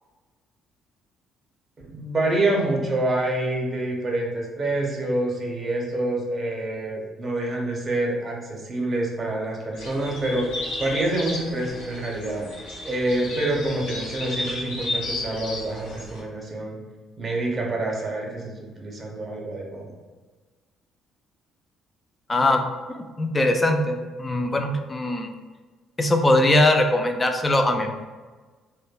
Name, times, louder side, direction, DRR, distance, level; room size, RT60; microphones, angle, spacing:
voice 1, 1.9-16.8 17.2-19.9, right 2 dB, 40° right, -1 dB, 0.7 m, -27 dB
sound 1, 9.7-16.2, left 2 dB, 85° left, 0.6 m, -33 dB
voice 2, 22.3-22.6 22.9-25.3 26.0-27.9, left 1 dB, 25° left, 5 dB, 0.4 m, -21 dB
2.5 x 2.1 x 2.3 m, 1.3 s
supercardioid pair, 60°, 0 cm